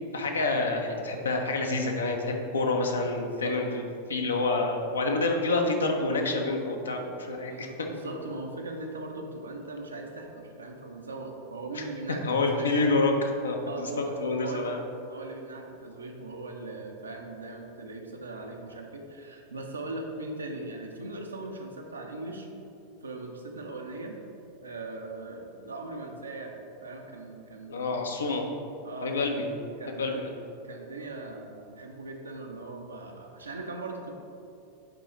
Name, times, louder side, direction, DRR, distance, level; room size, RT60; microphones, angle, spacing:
voice 1, 0.1-7.7 11.7-11.8 12.2-14.8 27.7-28.4 29.0-29.5 30.0-30.3, left 3 dB, 70° left, 3 dB, 0.7 m, -28 dB
voice 2, 3.1-3.6 7.5-12.8 13.7-14.7 15.1-22.5 23.0-24.2 24.6-28.0 28.8-29.4 29.8-30.2 30.6-34.1, right 2 dB, 75° right, 2 dB, 0.7 m, -39 dB
9.7 x 3.8 x 3.1 m, 2.7 s
figure-of-eight pair, 90°, 0 cm